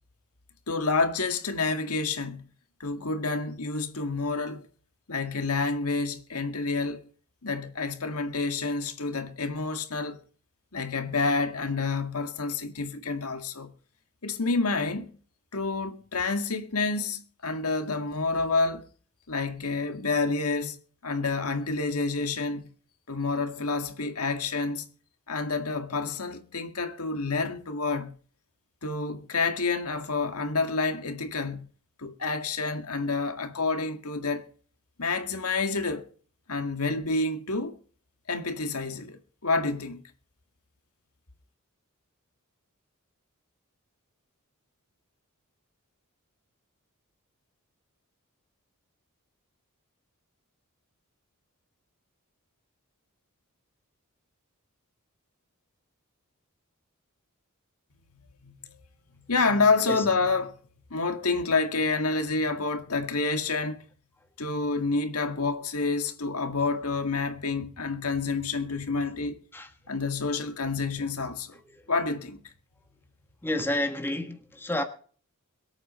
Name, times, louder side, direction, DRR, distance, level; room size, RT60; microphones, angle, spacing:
voice 1, 0.7-2.5 2.8-4.7 5.1-7.0 7.4-10.2 10.7-13.7 14.2-15.1 15.5-18.9 19.3-20.8 21.0-22.7 23.1-24.9 25.3-28.1 28.8-31.7 32.0-34.5 35.0-36.1 36.5-37.8 38.3-40.0 58.4-58.8 59.3-60.6 60.9-63.8 64.4-69.4 69.9-71.6 71.9-72.5, left 3 dB, 75° left, 1.9 m, -28 dB
voice 2, 73.4-74.8, left 1 dB, 10° left, 1.5 m, -30 dB
23.0 x 8.7 x 4.3 m
head